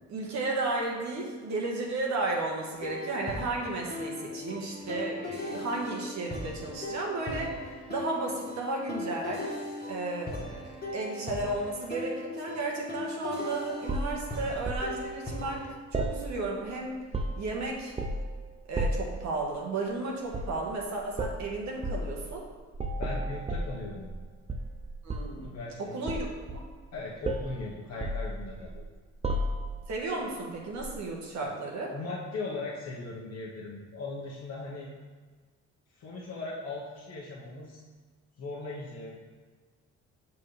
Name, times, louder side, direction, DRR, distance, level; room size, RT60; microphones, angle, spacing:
voice 1, 0.1-7.5 7.9-9.4 9.9-10.6 10.9-17.0 17.4-17.9 18.7-22.4 25.0-25.5 25.9-26.6 29.9-31.9, right 2 dB, 65° right, -2 dB, 1.5 m, -33 dB
sound 1, 2.7-15.7, left 1 dB, 30° left, 1.6 m, -39 dB
sound 2, 13.9-14.9 15.9-16.7 17.0-17.5 18.0-18.3 18.8-19.2 20.3-20.6 21.1-21.4 21.8-22.1 22.7-24.2 24.5-25.4 26.1-26.9 27.2-27.6 28.0-28.8 29.2-29.8 30.8-31.0, right 1 dB, 20° right, 0.6 m, -32 dB
voice 2, 23.0-24.1 25.4-26.1 26.9-28.8 31.4-31.6 31.9-34.9 36.0-37.8 38.4-39.2, left 3 dB, 60° left, -5 dB, 1.2 m, -38 dB
7.2 x 4.9 x 3.3 m, 1.5 s
cardioid pair, 90°, 30 cm